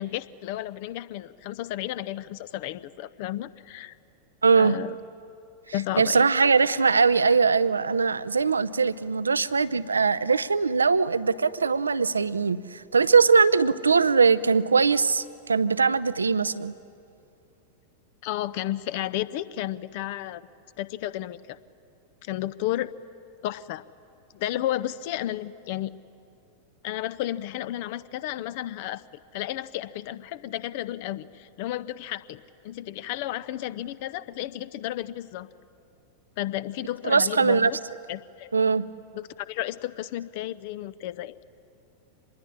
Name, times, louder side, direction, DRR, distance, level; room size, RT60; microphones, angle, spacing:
voice 1, 0.0-4.0 4.6-4.9 5.7-6.2 18.2-20.5 20.8-21.6 22.2-22.9 23.4-23.8 24.3-25.9 26.8-29.0 29.3-35.5 36.4-37.8 38.1-38.5 39.1-41.4, left 14 dB, 50° left, 17 dB, 0.7 m, -32 dB
voice 2, 4.4-4.8 6.0-16.7 37.0-37.7 38.5-38.8, right 5 dB, 75° right, 15 dB, 0.6 m, -21 dB
26.0 x 21.0 x 9.9 m, 2.6 s
figure-of-eight pair, 90°, 0 cm